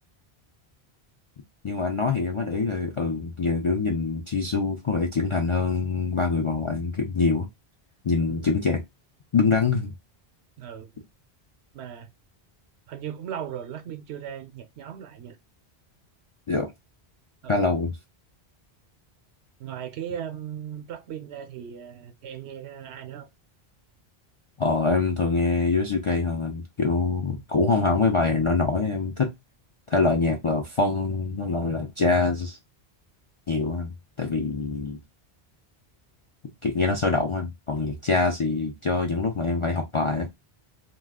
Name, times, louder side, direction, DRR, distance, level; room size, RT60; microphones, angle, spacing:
voice 1, 1.6-7.5 8.0-8.8 9.3-9.9 16.5-16.7 17.5-18.0 24.6-29.3 29.9-32.6 33.5-35.0 36.6-40.3, left 4 dB, 50° left, 0.4 m, -24 dB
voice 2, 10.6-10.9 11.7-12.1 12.9-15.4 17.4-17.6 19.6-23.3, right 9 dB, 80° right, 0.8 m, -37 dB
2.3 x 2.3 x 3.4 m
omnidirectional pair, 1.1 m